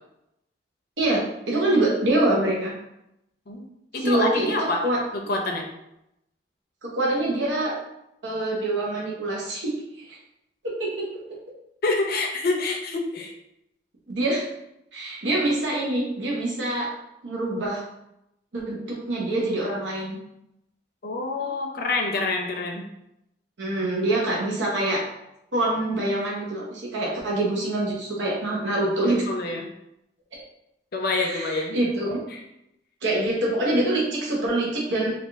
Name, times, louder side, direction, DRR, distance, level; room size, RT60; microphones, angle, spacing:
voice 1, 1.0-2.7 4.0-5.0 6.8-7.7 8.2-9.7 10.1-10.2 10.6-11.1 14.1-14.5 14.9-16.9 17.2-17.8 18.5-20.2 23.6-25.0 25.5-29.2 30.3-30.4 31.2-32.2 33.0-35.1, right 1 dB, 80° right, -4 dB, 0.8 m, -25 dB
voice 2, 3.9-4.8 5.1-5.7 11.8-13.3 21.0-22.8 29.0-29.7 30.9-31.8 32.3-32.4, left 3 dB, 55° left, 2 dB, 0.6 m, -27 dB
3.5 x 2.4 x 3.4 m, 0.84 s
head